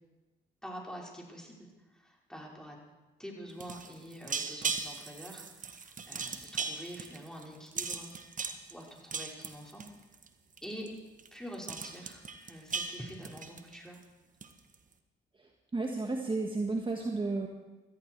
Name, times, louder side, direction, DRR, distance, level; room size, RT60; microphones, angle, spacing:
voice 1, 0.6-2.8 3.2-8.1 8.4-9.8 10.6-10.9 11.3-14.0, equal, 5° left, -2 dB, 5.4 m, -46 dB
sound 1, 3.5-10.3 10.6-10.9 11.2-11.3 11.5-14.0 14.4-14.7, right 5 dB, 40° right, 1.4 m, -38 dB
voice 2, 15.7-17.5, right 3 dB, 25° right, 2 dB, 1.7 m, -32 dB
17.5 x 14.0 x 4.7 m, 1.1 s
hypercardioid pair, 50°, 19 cm